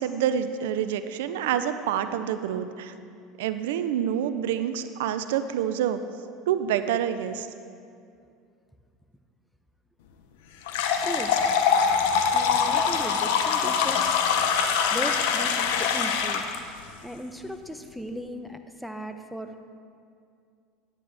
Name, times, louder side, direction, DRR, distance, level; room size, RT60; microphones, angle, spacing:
voice 1, 0.0-2.9 3.4-6.0 6.5-7.5, right 9 dB, 85° right, 11 dB, 0.4 m, -27 dB
sound 1, 10.7-16.6, left 6 dB, 80° left, 0.6 m, -24 dB
voice 2, 11.0-11.3 12.3-14.3 14.9-16.4 17.0-19.5, equal, ahead, 7 dB, 0.6 m, -37 dB
9.7 x 9.4 x 3.3 m, 2.4 s
supercardioid pair, 95°, 0 cm